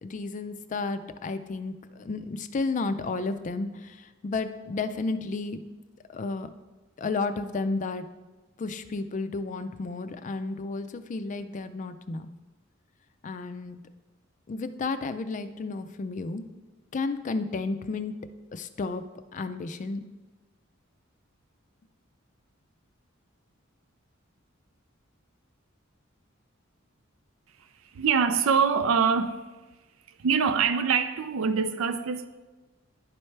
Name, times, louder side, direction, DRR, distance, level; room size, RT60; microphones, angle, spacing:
voice 1, 0.0-5.6 6.1-6.5 7.0-8.1 8.6-12.3 13.2-13.8 14.5-16.4 16.9-18.1 18.5-19.0 19.3-20.0, left 3 dB, 40° left, 0.4 m, -32 dB
voice 2, 27.9-29.4 30.1-32.3, right 6 dB, 80° right, 0.4 m, -24 dB
10.5 x 4.4 x 3.3 m
head